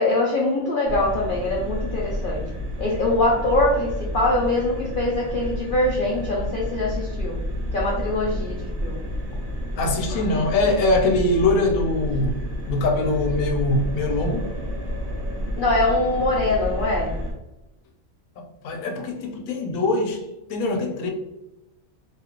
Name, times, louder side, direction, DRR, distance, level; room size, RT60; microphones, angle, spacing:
voice 1, 0.0-2.5 2.8-7.4 7.7-9.0 10.1-10.2 15.6-17.2, left 2 dB, 65° left, 0.5 m, -23 dB
sound 1, 0.8-17.3, equal, 50° right, 0.9 m, -30 dB
voice 2, 9.8-12.4 12.7-14.5 18.4-20.2 20.5-21.1, left 2 dB, 90° left, 1.0 m, -23 dB
2.8 x 2.4 x 3.0 m
omnidirectional pair, 1.4 m